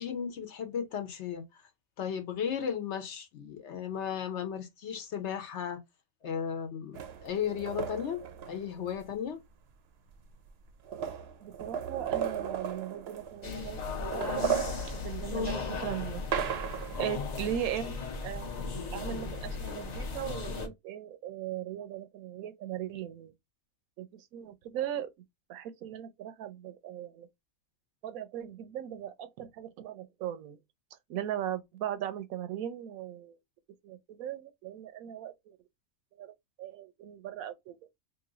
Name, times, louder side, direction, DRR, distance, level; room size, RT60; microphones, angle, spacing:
voice 1, 0.0-1.4 2.0-5.8 6.2-7.0 7.2-9.4, left 8 dB, 60° left, 0.9 m, -35 dB
sound 1, 6.9-9.1 10.1-10.2 10.5-13.6 14.0-17.1, right 8 dB, 60° right, 0.7 m, -36 dB
voice 2, 11.4-14.6 14.8-16.2 17.0-18.5 18.9-23.3 24.0-25.1 25.5-27.3 28.0-30.6 31.1-33.4 33.8-35.6 36.2-37.8, right 10 dB, 85° right, 1.0 m, -38 dB
sound 2, 13.4-20.7, left 4 dB, 45° left, 0.6 m, -36 dB
3.0 x 2.6 x 3.8 m
omnidirectional pair, 1.4 m